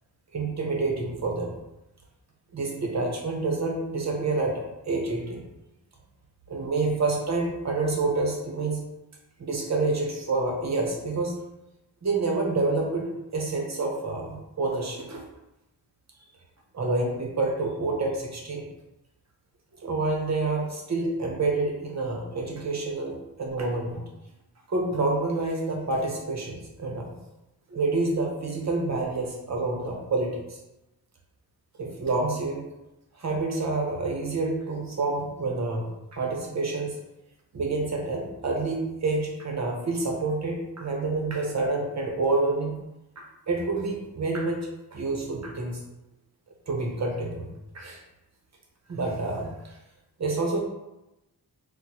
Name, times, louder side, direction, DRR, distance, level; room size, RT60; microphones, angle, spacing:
voice 1, 0.3-1.5 2.5-5.4 6.5-8.8 9.4-11.3 12.0-13.1 13.3-15.2 16.7-18.7 19.8-24.0 24.7-27.1 27.7-30.6 31.8-32.6 33.2-35.8 36.1-37.0 37.5-42.8 43.2-45.8 46.7-47.5 47.7-48.0 48.9-49.7 50.2-50.6, right 3 dB, 45° right, 0 dB, 0.8 m, -28 dB
4.3 x 2.2 x 2.8 m, 0.96 s
wide cardioid pair, 100°, 37 cm